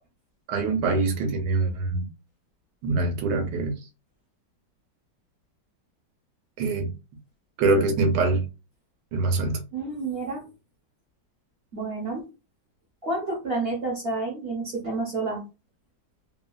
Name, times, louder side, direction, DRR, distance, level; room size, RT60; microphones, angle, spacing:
voice 1, 0.5-2.1 2.8-3.8 6.6-6.9 7.6-8.5 9.1-9.6, right 3 dB, 80° right, 1.3 m, -24 dB
voice 2, 9.7-10.5 11.7-12.3 13.0-15.4, right 3 dB, 45° right, 0.8 m, -29 dB
3.2 x 2.3 x 2.3 m
omnidirectional pair, 2.0 m